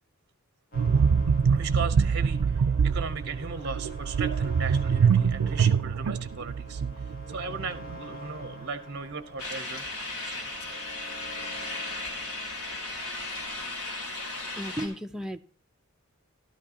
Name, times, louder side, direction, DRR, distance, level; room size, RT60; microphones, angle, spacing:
sound 1, 0.7-13.4, left 1 dB, 40° left, 1.9 m, -47 dB
sound 2, 0.7-8.2 8.4-8.6, right 6 dB, 85° right, 0.4 m, -25 dB
voice 1, 1.5-6.8 7.3-9.8 10.2-10.8, right 5 dB, 50° right, 12 dB, 0.7 m, -37 dB
sound 3, 9.4-14.9, left 2 dB, 85° left, 2.9 m, -36 dB
voice 2, 14.6-15.4, equal, 5° right, 5 dB, 0.4 m, -34 dB
13.5 x 12.5 x 2.8 m, 0.41 s
head